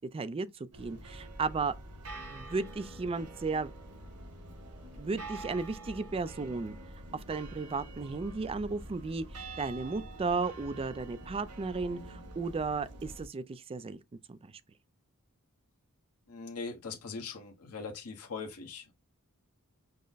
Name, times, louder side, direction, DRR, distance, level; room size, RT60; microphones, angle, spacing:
voice 1, 0.1-1.7 2.3-3.7 5.0-6.8 7.1-14.0 14.3-14.5, right 4 dB, 25° right, 0.4 m, -34 dB
sound 1, 0.7-13.3, right 1 dB, 85° right, 1.3 m, -46 dB
voice 2, 16.3-18.9, left 4 dB, 80° left, 1.0 m, -41 dB
5.3 x 2.0 x 3.9 m
head